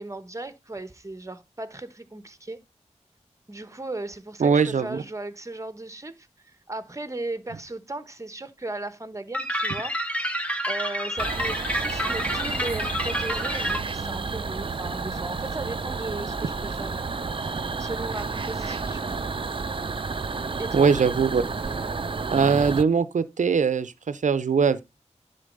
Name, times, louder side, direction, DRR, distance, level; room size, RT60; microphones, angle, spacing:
voice 1, 0.0-2.6 3.5-9.9 10.3-19.2 20.6-20.9, right 2 dB, 25° right, 1.0 m, -36 dB
voice 2, 4.4-5.0 20.7-21.4 22.3-24.8, right 5 dB, 90° right, 0.6 m, -21 dB
sound 1, 9.3-13.8, equal, 10° left, 1.2 m, -28 dB
sound 2, 11.2-22.8, right 4 dB, 45° right, 0.5 m, -31 dB
10.0 x 3.9 x 5.3 m
wide cardioid pair, 60°, 12 cm